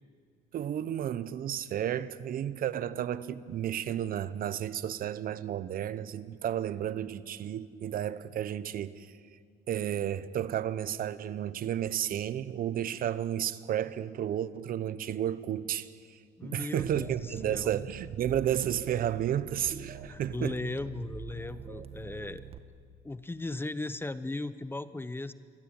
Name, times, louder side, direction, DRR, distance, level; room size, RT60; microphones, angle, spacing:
voice 1, 0.5-9.1 9.7-15.9 16.4-20.6, right 10 dB, 60° right, 1.1 m, -32 dB
voice 2, 16.4-17.7 20.0-22.4 23.0-25.3, left 2 dB, 15° left, 0.9 m, -37 dB
sound 1, 16.8-22.6, right 7 dB, 35° right, 1.7 m, -44 dB
28.0 x 22.5 x 9.0 m
cardioid pair, 110°, 17 cm